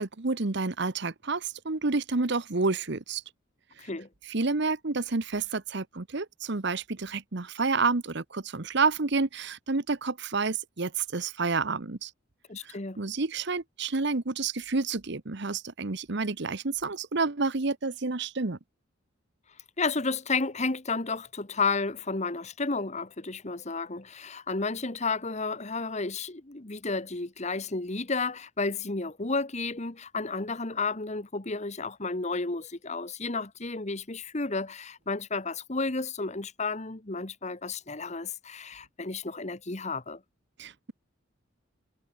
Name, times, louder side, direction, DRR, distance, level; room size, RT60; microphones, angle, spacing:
voice 1, 0.0-3.2 4.3-12.1 12.6-18.6 40.6-40.9, right 3 dB, 60° right, 1.1 m, -29 dB
voice 2, 3.8-4.1 12.5-13.0 19.8-40.2, left 3 dB, 35° left, 1.4 m, -32 dB
head